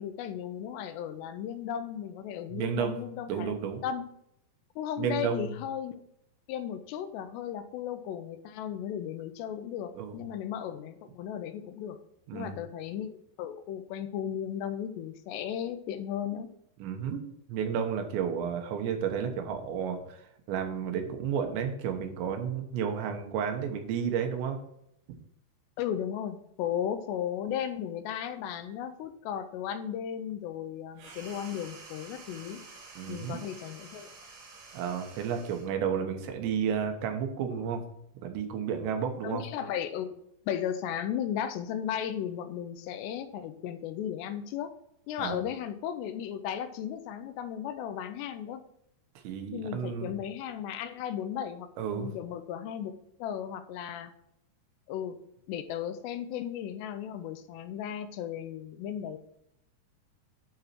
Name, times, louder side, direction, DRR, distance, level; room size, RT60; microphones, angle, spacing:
voice 1, 0.0-3.6 3.8-4.1 4.8-6.0 6.5-12.0 12.3-16.5 25.8-32.6 33.1-34.1 39.2-44.7 45.1-48.6 49.5-52.9 53.2-54.1 54.9-55.2 55.5-59.2, left 9 dB, 85° left, 10 dB, 2.7 m, -35 dB
voice 2, 2.5-3.0 3.3-3.8 5.0-5.5 10.0-10.2 12.3-12.6 16.8-17.2 17.5-20.2 20.5-24.6 33.0-33.4 34.7-37.8 38.2-39.4 45.2-45.4 49.2-50.1 51.8-52.1, right 7 dB, 85° right, 5 dB, 3.4 m, -32 dB
sound 1, 30.9-35.8, right 3 dB, 65° right, 3.6 m, -49 dB
11.5 x 4.1 x 4.4 m, 0.76 s
omnidirectional pair, 5.1 m